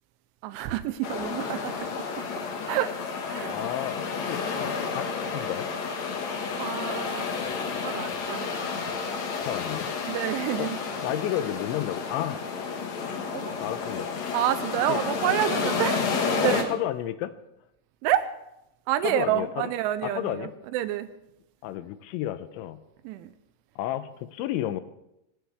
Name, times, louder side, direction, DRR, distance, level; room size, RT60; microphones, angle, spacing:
voice 1, 0.4-1.9 2.7-2.9 3.3-3.6 6.5-7.3 7.8-8.8 10.1-10.8 13.3-13.6 14.3-16.7 18.0-18.3 18.9-21.1 23.0-23.3, right 12 dB, 85° right, 12 dB, 3.2 m, -28 dB
sound 1, 1.0-16.6, left 5 dB, 60° left, 1.8 m, -31 dB
voice 2, 3.5-5.1 5.3-5.7 9.4-9.9 10.6-10.7 11.0-12.4 13.6-14.1 14.9-15.0 16.4-17.3 19.0-19.5 20.0-20.5 21.6-22.8 23.8-24.8, left 12 dB, 80° left, 12 dB, 3.0 m, -31 dB
23.0 x 18.0 x 3.4 m, 0.86 s
omnidirectional pair, 5.5 m